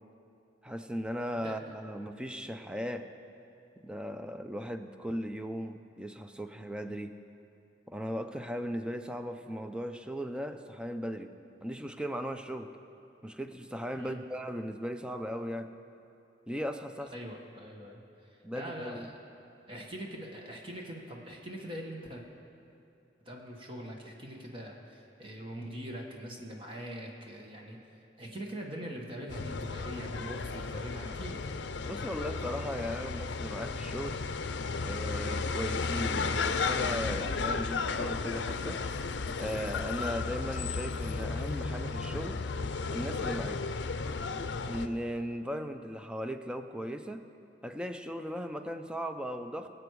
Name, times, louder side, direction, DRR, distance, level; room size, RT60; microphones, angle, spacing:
voice 1, 0.6-3.1 3.8-7.1 7.9-11.3 11.6-12.7 13.2-15.7 16.5-17.1 18.4-19.1 31.9-34.1 34.8-38.8 39.4-42.4 42.9-43.6 44.7-47.2 47.6-49.7, equal, 5° right, 7 dB, 0.6 m, -37 dB
voice 2, 1.4-1.7 13.9-14.2 17.1-19.2 19.7-22.2 23.2-27.8 28.2-31.5, equal, 30° right, 0 dB, 1.3 m, -43 dB
sound 1, 29.3-44.9, left 4 dB, 70° left, 0.6 m, -34 dB
23.5 x 7.9 x 4.8 m, 2.7 s
head